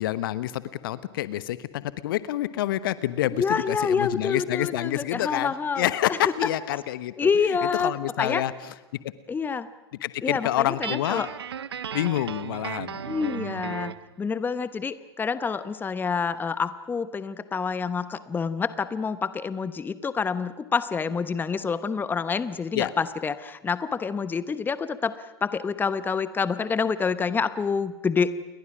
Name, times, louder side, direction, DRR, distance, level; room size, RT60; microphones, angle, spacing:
voice 1, 0.0-8.5 10.0-11.3 11.9-13.0 22.7-22.9, left 13 dB, 55° left, 16 dB, 1.0 m, -28 dB
voice 2, 3.3-6.2 7.2-7.9 8.2-8.4 9.3-9.7 10.2-11.3 13.1-13.9 14.2-28.3, left 5 dB, 15° left, 14 dB, 1.0 m, -27 dB
Guitar, 10.8-14.1, right 8 dB, 75° right, 0.9 m, -35 dB
29.5 x 22.0 x 6.2 m, 1.1 s
figure-of-eight pair, 95°, 13 cm